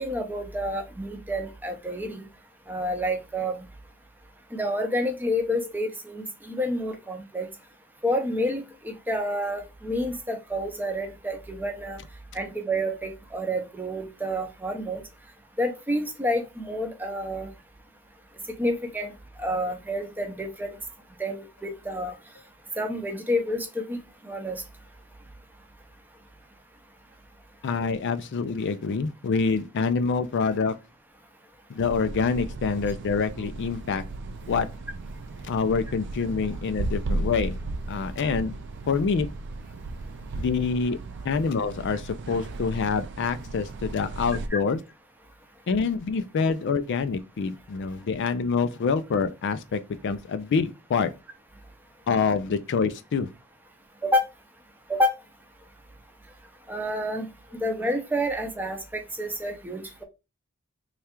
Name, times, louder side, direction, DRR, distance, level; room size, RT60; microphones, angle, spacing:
voice 1, 0.0-2.2 2.7-3.6 4.5-7.5 8.0-12.0 12.3-15.0 15.6-17.5 18.6-19.1 19.4-20.7 21.2-22.1 22.8-24.0 24.2-24.6 44.5-44.6 54.0-54.3 54.9-55.1 56.7-57.3 57.6-60.0, equal, 10° right, 0.6 m, -29 dB
voice 2, 27.6-30.7 31.7-34.0 34.5-34.7 35.4-37.6 37.9-38.5 38.8-39.3 40.4-41.0 41.2-44.8 45.7-51.1 52.1-53.3, left 5 dB, 55° left, 0.4 m, -26 dB
sound 1, 31.8-44.5, right 2 dB, 55° right, 0.4 m, -35 dB
3.3 x 2.3 x 4.3 m
head